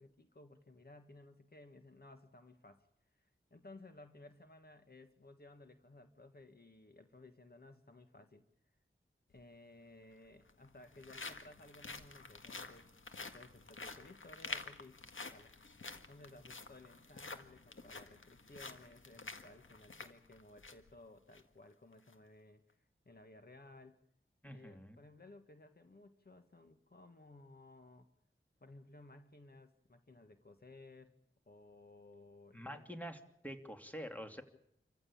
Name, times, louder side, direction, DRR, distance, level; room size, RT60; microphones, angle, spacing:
voice 1, 0.0-8.5 9.3-12.9 13.2-15.5 16.1-24.0 24.4-28.1 28.6-31.2 31.5-32.9, left 2 dB, 50° left, 7 dB, 1.7 m, -58 dB
Walk - Gravel, 9.3-9.4 10.3-20.9 21.3-21.4 21.9-22.1, left 3 dB, 70° left, 1.9 m, -49 dB
voice 2, 24.4-25.0 32.5-33.2 33.4-34.4, equal, 5° left, 5 dB, 2.8 m, -46 dB
27.5 x 15.0 x 8.7 m, 0.75 s
wide cardioid pair, 60°, 21 cm